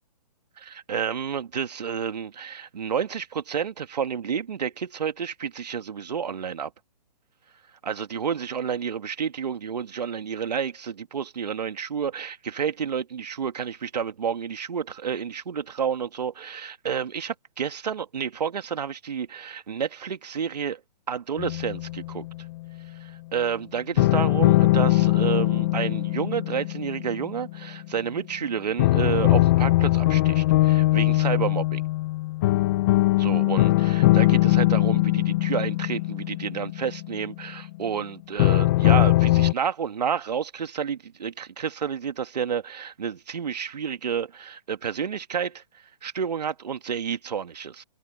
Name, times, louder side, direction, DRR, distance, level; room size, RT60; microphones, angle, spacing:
voice 1, 0.6-6.7 7.8-20.8 21.1-22.3 22.9-31.8 33.2-47.8, right 7 dB, 70° right, 2.2 m, -30 dB
sound 1, 21.4-22.6 24.0-28.0 28.8-37.6 38.4-39.5, left 17 dB, 30° left, 0.9 m, -21 dB
open air
hypercardioid pair, 150°, 21 cm